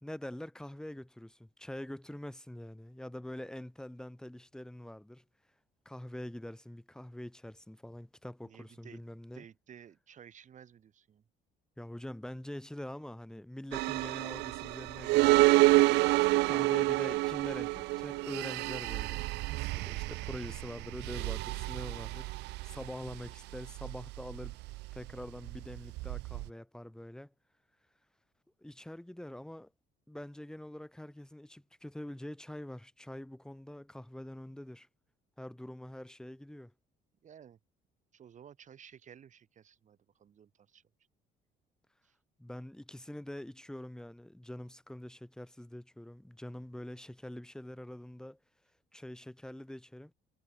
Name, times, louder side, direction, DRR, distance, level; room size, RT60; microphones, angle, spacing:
voice 1, 0.0-5.2 5.9-9.4 11.8-15.3 16.1-19.2 19.6-24.6 24.9-27.3 28.6-29.7 30.1-34.9 35.4-36.7 42.4-48.4 48.9-50.1, left 1 dB, 5° left, 2.2 m, -45 dB
voice 2, 8.4-9.0 9.3-11.2 37.2-37.6 38.1-40.8 42.0-42.2, right 8 dB, 45° right, 3.9 m, -55 dB
sound 1, 13.7-26.5, right 21 dB, 85° right, 0.7 m, -29 dB
cardioid pair, 110°, 17 cm